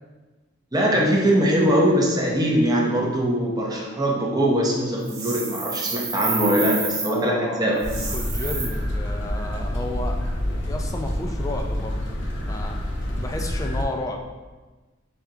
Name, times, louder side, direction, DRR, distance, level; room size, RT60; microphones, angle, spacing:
voice 1, 0.7-8.0, equal, 20° right, -2 dB, 0.6 m, -21 dB
sound 1, 5.0-7.1 7.8-8.6, right 4 dB, 90° right, 1.2 m, -29 dB
voice 2, 7.0-7.6 8.1-10.2 10.5-12.0 12.5-12.8 13.2-14.2, left 1 dB, 15° left, 3 dB, 0.3 m, -32 dB
sound 2, 7.8-13.9, left 1 dB, 60° left, 0.7 m, -27 dB
6.8 x 2.3 x 2.7 m, 1.2 s
head